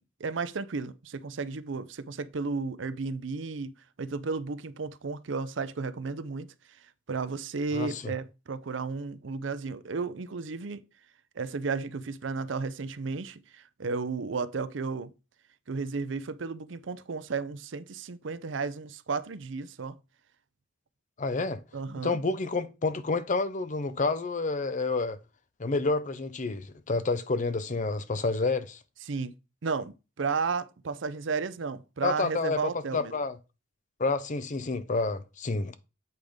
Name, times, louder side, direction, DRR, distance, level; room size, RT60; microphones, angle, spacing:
voice 1, 0.0-3.7 4.0-6.5 6.8-10.8 11.4-15.1 15.7-20.0 21.7-22.2 29.0-29.3 29.6-33.1, right 4 dB, 70° right, 0.6 m, -33 dB
voice 2, 7.7-8.1 21.2-21.6 22.0-25.2 25.6-28.8 32.0-32.6 32.9-33.4 34.0-35.8, left 3 dB, 40° left, 0.6 m, -29 dB
8.1 x 3.5 x 5.0 m
head